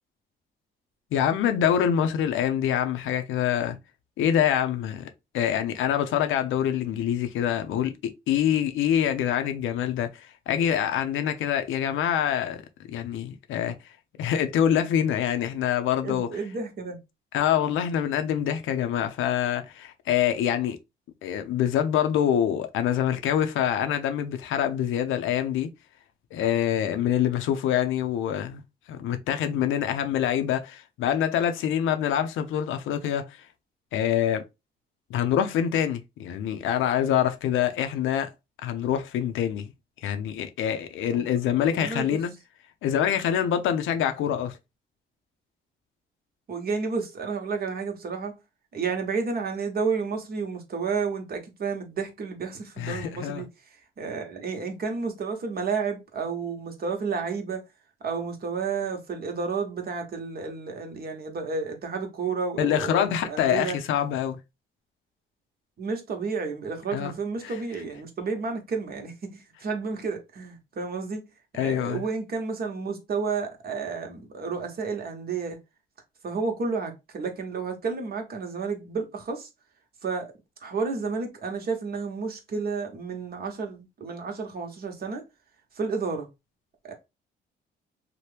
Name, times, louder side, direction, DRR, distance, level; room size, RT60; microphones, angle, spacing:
voice 1, 1.1-3.8 4.2-5.0 5.3-12.6 12.9-13.7 14.2-16.3 17.3-20.8 21.2-25.7 26.3-28.6 28.9-33.2 33.9-34.4 35.1-38.3 38.6-39.7 40.0-42.3 42.8-44.6 52.8-53.4 62.6-64.4 66.9-67.1 67.4-67.5 71.6-72.0, left 9 dB, 80° left, 0.5 m, -25 dB
voice 2, 16.0-17.0 41.1-41.3 41.7-42.2 46.5-48.3 48.7-57.7 58.0-63.8 65.8-71.2 71.5-75.6 76.2-79.5 80.0-80.3 80.6-85.2 85.7-86.3 86.8-86.9, right 5 dB, 50° right, 1.0 m, -31 dB
2.9 x 2.1 x 3.2 m
cardioid pair, 90°, 20 cm